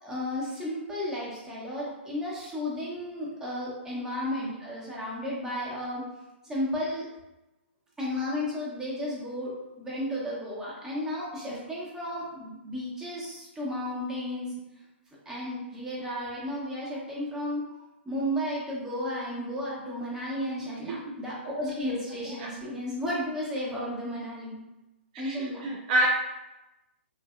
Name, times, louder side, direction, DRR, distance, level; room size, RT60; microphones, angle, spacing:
voice 1, 0.0-6.0 6.4-7.1 8.0-14.5 15.2-17.6 18.0-24.6 25.2-25.7, left 1 dB, 10° right, -7 dB, 1.1 m, -33 dB
voice 2, 25.1-26.1, right 1 dB, 45° right, -1 dB, 0.4 m, -27 dB
3.2 x 2.6 x 2.5 m, 0.99 s
hypercardioid pair, 130°, 6 cm